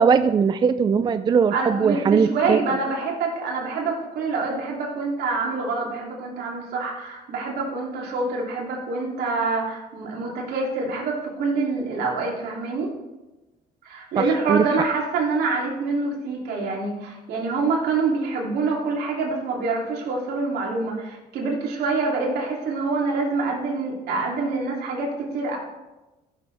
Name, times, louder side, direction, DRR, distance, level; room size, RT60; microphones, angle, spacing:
voice 1, 0.0-2.6 14.2-14.3 14.5-14.6, right 6 dB, 25° right, 11 dB, 0.3 m, -19 dB
voice 2, 1.5-12.9 13.8-25.6, right 3 dB, 75° right, -2 dB, 2.9 m, -26 dB
15.0 x 7.1 x 3.4 m, 1.1 s
cardioid pair, 110°, 17 cm